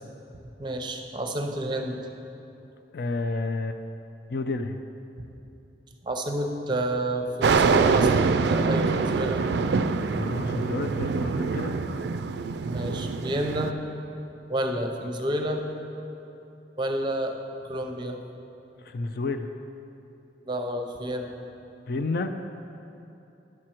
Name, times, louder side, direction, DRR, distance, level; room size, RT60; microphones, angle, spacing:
voice 1, 0.6-2.0 6.0-9.4 12.7-13.7 14.5-15.6 16.8-17.4 17.7-18.2 20.5-21.4, right 1 dB, 25° right, 4 dB, 0.7 m, -29 dB
voice 2, 2.9-3.8 4.3-4.8 10.1-11.7 15.0-15.1 18.8-19.5 21.9-22.3, left 3 dB, 60° left, 7 dB, 0.4 m, -30 dB
sound 1, 7.4-13.7, right 4 dB, 65° right, 0.3 m, -24 dB
11.0 x 6.2 x 4.5 m, 2.9 s
head